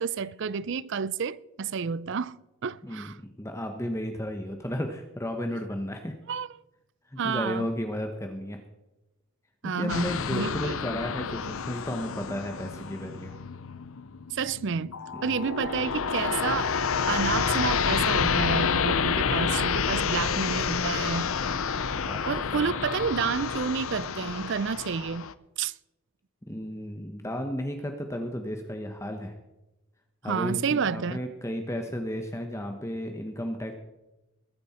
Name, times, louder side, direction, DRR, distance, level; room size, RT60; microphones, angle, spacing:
voice 1, 0.0-3.2 6.3-6.5 7.2-7.7 9.6-10.7 14.3-15.0 15.2-16.7 17.1-21.3 22.3-25.3 25.6-25.7 30.2-31.2, right 6 dB, 55° right, 0.5 m, -30 dB
voice 2, 2.8-6.1 7.1-8.6 9.6-13.3 15.1-15.2 19.9-20.1 21.9-22.2 26.5-29.3 30.2-33.7, equal, 15° left, 1.0 m, -33 dB
sound 1, 9.9-25.3, left 6 dB, 65° left, 0.7 m, -29 dB
21.0 x 9.6 x 4.3 m
head